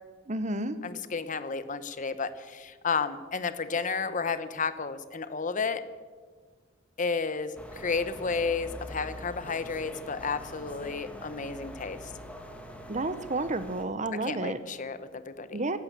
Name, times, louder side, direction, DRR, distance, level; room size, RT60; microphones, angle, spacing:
voice 1, 0.3-0.8 12.9-14.6 15.5-15.8, right 2 dB, 35° right, 12 dB, 0.9 m, -31 dB
voice 2, 0.8-5.8 7.0-7.5 7.8-12.1 14.2-15.6, left 5 dB, 40° left, 12 dB, 0.8 m, -32 dB
sound 1, 7.5-13.8, equal, 5° left, 1.6 m, -44 dB
16.5 x 12.5 x 6.8 m, 1.5 s
head